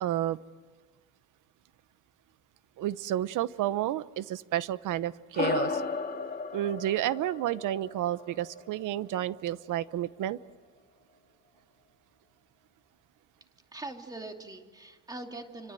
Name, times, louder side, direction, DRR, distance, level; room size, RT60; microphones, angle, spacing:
voice 1, 0.0-0.4 2.8-5.8 6.5-10.4, right 13 dB, 70° right, 15 dB, 1.0 m, -31 dB
sound 1, 5.3-10.1, left 5 dB, 30° left, 2.5 m, -35 dB
voice 2, 13.7-15.7, right 2 dB, 10° right, 4 dB, 2.6 m, -42 dB
29.5 x 25.5 x 7.8 m, 1.5 s
cardioid pair, 165°, 32 cm